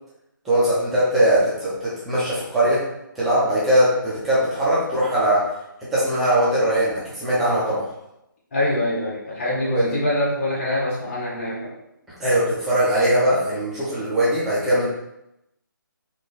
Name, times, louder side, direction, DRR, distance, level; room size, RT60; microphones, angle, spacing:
voice 1, 0.4-2.8 3.2-5.5 5.9-7.9 9.8-9.9 12.2-14.9, right 1 dB, ahead, -10 dB, 0.3 m, -20 dB
voice 2, 8.5-11.7, left 1 dB, 35° left, -7 dB, 1.6 m, -24 dB
4.9 x 2.3 x 3.9 m, 0.85 s
hypercardioid pair, 165°, 12 cm